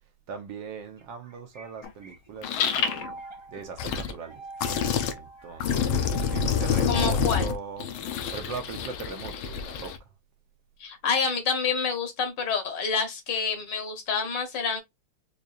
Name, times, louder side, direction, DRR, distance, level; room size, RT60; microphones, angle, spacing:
voice 1, 0.3-3.1 3.5-4.5 5.2-7.9 8.3-10.1, right 5 dB, 70° right, 1.3 m, -40 dB
sound 1, 1.0-8.5, right 3 dB, 40° right, 0.3 m, -46 dB
sound 2, 1.8-1.9 2.4-3.1 3.6-4.1 4.6-5.1 5.6-10.0, left 7 dB, 80° left, 1.5 m, -27 dB
voice 2, 6.9-7.5 10.8-14.8, left 5 dB, 65° left, 1.5 m, -28 dB
4.8 x 2.7 x 2.4 m
omnidirectional pair, 2.3 m